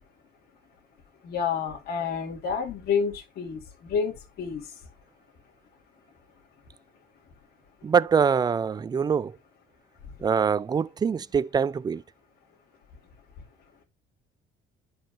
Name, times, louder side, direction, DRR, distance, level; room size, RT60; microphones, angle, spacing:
voice 1, 1.2-3.6 3.9-4.6, left 6 dB, 65° left, 2.5 m, -29 dB
voice 2, 7.8-9.3 10.2-12.0, right 6 dB, 25° right, 0.4 m, -24 dB
10.5 x 4.9 x 2.7 m
cardioid pair, 110°, 17 cm